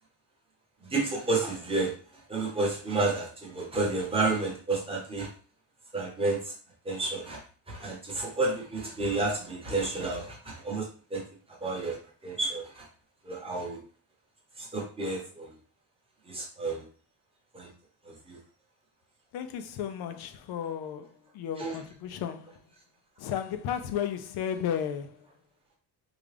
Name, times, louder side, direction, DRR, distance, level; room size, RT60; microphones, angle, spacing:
voice 1, 0.9-1.9 2.3-5.3 5.9-6.5 6.8-7.4 7.7-10.9 11.1-11.2 11.6-12.0 12.2-12.9 13.2-13.8 14.6-15.5 16.3-16.8 17.5-17.7 18.1-18.4 21.6-21.8, right 3 dB, 10° right, 0.9 m, -30 dB
voice 2, 19.3-22.6 23.2-25.3, left 9 dB, 55° left, 0.5 m, -34 dB
3.7 x 2.3 x 3.2 m
cardioid pair, 160°, 48 cm